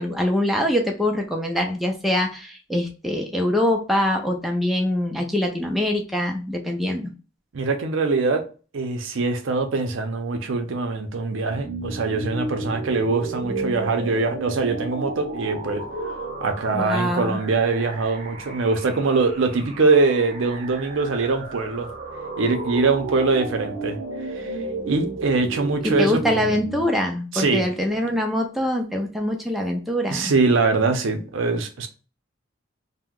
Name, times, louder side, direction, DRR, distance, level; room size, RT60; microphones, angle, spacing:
voice 1, 0.0-7.1 16.7-17.4 25.8-30.3, left 1 dB, ahead, 0.3 m, -24 dB
voice 2, 7.5-8.4 8.7-16.1 16.4-21.9 22.4-24.0 24.2-24.6 24.8-26.2 27.3-27.7 30.1-31.9, right 3 dB, 75° right, 0.5 m, -23 dB
sound 1, 11.5-26.9, right 2 dB, 40° right, 0.6 m, -33 dB
2.8 x 2.1 x 3.5 m
head